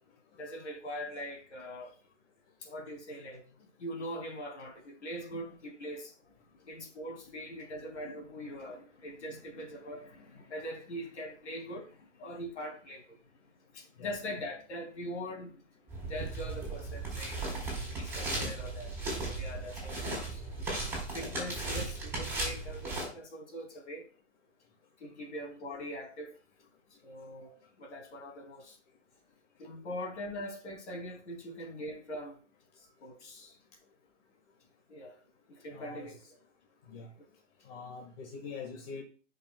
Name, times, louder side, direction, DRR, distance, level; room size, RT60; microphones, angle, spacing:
voice 1, 0.4-1.9 2.6-6.1 6.7-13.2 13.7-15.5 16.1-17.5 18.0-20.4 21.1-24.1 25.0-26.3 27.0-28.8 29.6-32.4 32.8-33.5 34.9-35.2 35.5-36.2, equal, 70° left, 2.7 m, -42 dB
sound 1, 15.9-23.0, right 2 dB, 5° right, 3.9 m, -36 dB
voice 2, 35.7-36.1 36.9-37.1 37.6-39.0, left 5 dB, 50° left, 1.7 m, -44 dB
11.5 x 5.5 x 2.3 m
hypercardioid pair, 140°, 36 cm